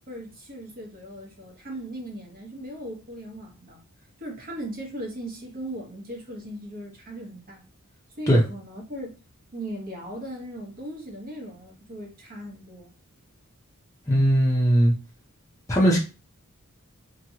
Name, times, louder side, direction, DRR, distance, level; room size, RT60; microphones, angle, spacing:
voice 1, 0.1-3.8 4.2-7.6 8.2-9.1 9.5-12.9, right 1 dB, 40° right, 1.0 m, -38 dB
voice 2, 14.1-14.9 15.7-16.0, equal, 15° left, 0.6 m, -19 dB
2.9 x 2.7 x 2.8 m
head